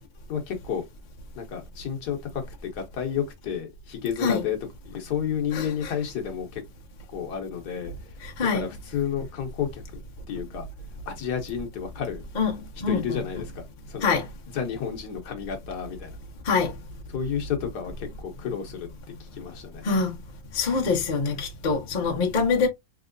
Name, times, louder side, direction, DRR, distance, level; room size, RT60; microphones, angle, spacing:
voice 1, 0.3-0.9 1.3-4.6 4.8-6.6 7.1-8.2 8.5-9.8 10.3-10.7 11.1-12.2 12.9-14.2 14.5-16.2 17.1-18.9 19.2-19.9, left 8 dB, 65° left, 1.2 m, -31 dB
voice 2, 12.8-13.2 14.0-14.2 16.5-16.7 19.8-20.1 20.5-22.7, left 5 dB, 50° left, 0.5 m, -24 dB
3.5 x 3.0 x 2.5 m
omnidirectional pair, 2.1 m